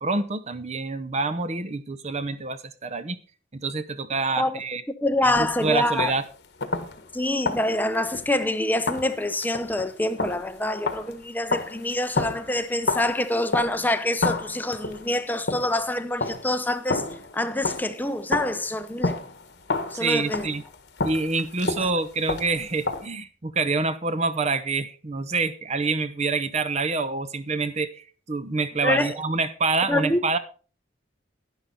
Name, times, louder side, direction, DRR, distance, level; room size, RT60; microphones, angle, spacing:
voice 1, 0.0-3.2 3.5-4.8 5.2-6.2 19.9-20.6 21.0-30.4, right 3 dB, 35° right, 0.7 m, -27 dB
voice 2, 5.0-6.1 7.1-17.0 17.3-19.2 19.9-20.5 28.8-29.2 29.9-30.2, left 1 dB, 10° left, 0.7 m, -26 dB
sound 1, 5.3-6.3 6.6-7.2 7.5-8.5 8.9-13.9 14.2-15.9 16.2-18.0 18.3-23.1, left 3 dB, 60° left, 1.5 m, -31 dB
11.5 x 10.5 x 4.3 m
head